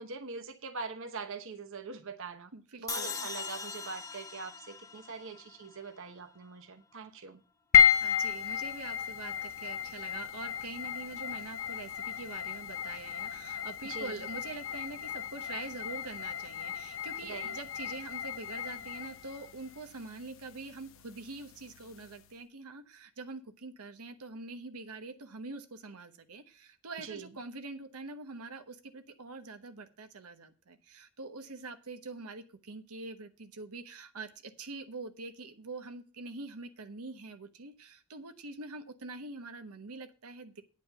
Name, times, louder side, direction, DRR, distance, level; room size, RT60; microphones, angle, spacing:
voice 1, 0.0-2.5 2.8-7.4 13.8-14.2 17.2-17.5 27.0-27.3, right 4 dB, 60° right, 1.0 m, -43 dB
voice 2, 2.5-3.3 7.7-40.6, right 3 dB, 85° right, 1.1 m, -44 dB
sound 1, 2.9-6.1, left 4 dB, 15° left, 1.2 m, -41 dB
sound 2, 7.7-22.2, left 8 dB, 60° left, 0.8 m, -32 dB
9.4 x 5.2 x 7.8 m
head